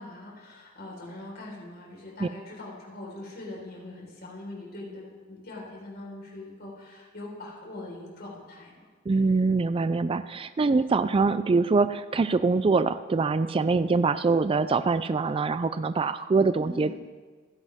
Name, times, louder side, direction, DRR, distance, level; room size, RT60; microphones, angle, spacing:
voice 1, 0.0-8.9 16.6-16.9, left 2 dB, 50° left, -3 dB, 4.6 m, -42 dB
voice 2, 9.1-16.9, right 4 dB, 25° right, 12 dB, 0.3 m, -24 dB
27.5 x 10.5 x 3.6 m, 1.5 s
head